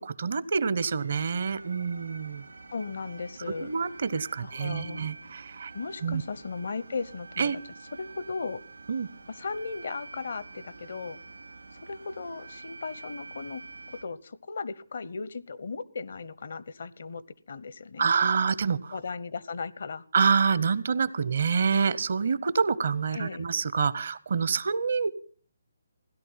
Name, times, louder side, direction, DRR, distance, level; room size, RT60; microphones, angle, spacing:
voice 1, 0.0-2.4 3.6-5.7 6.0-6.2 7.4-7.6 8.9-9.1 18.0-19.0 20.1-25.1, right 5 dB, 60° right, 0.8 m, -27 dB
sound 1, 1.0-14.0, right 3 dB, 90° right, 2.8 m, -47 dB
voice 2, 2.7-3.7 4.4-5.1 5.7-7.6 8.0-8.6 9.4-11.2 11.7-17.2 17.5-18.1 18.9-20.0 23.1-23.4, left 4 dB, 65° left, 0.8 m, -36 dB
16.5 x 11.0 x 5.7 m
figure-of-eight pair, 145°, 0 cm